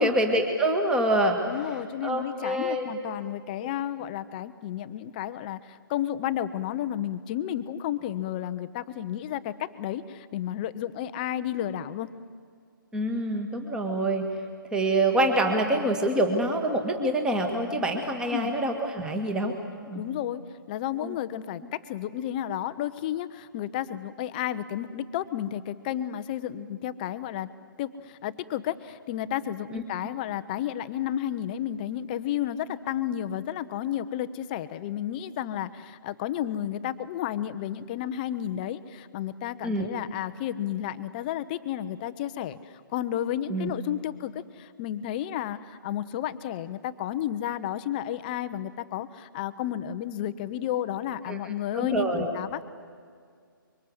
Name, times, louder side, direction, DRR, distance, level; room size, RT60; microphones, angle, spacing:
voice 1, 0.0-1.4 2.0-2.9 12.9-14.3 14.7-19.5 19.9-20.0 21.0-21.2 29.7-29.8 39.6-39.9 43.5-43.7 51.3-51.4 51.7-52.3, right 1 dB, 5° right, 4 dB, 1.8 m, -26 dB
voice 2, 1.5-12.1 18.3-18.5 19.9-20.4 20.7-27.5 27.8-52.6, left 11 dB, 25° left, 12 dB, 0.8 m, -32 dB
25.5 x 24.0 x 8.0 m, 2.1 s
hypercardioid pair, 160°, 12 cm